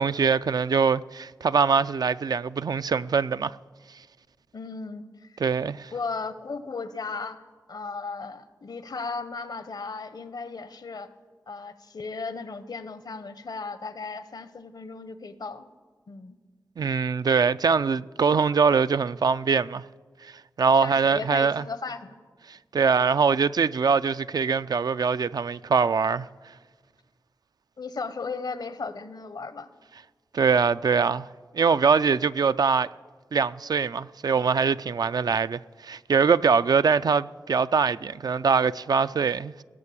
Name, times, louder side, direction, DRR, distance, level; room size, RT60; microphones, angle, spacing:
voice 1, 0.0-3.6 5.4-5.9 16.8-19.8 20.6-21.6 22.7-26.3 30.3-31.3 31.5-32.9 33.3-39.5, right 5 dB, 65° right, 0.3 m, -23 dB
voice 2, 4.5-5.4 5.9-7.4 7.7-11.1 11.5-15.7 16.1-16.4 20.7-22.2 27.8-29.7, left 4 dB, 70° left, 0.8 m, -36 dB
17.0 x 6.6 x 8.5 m
cardioid pair, 50°, 7 cm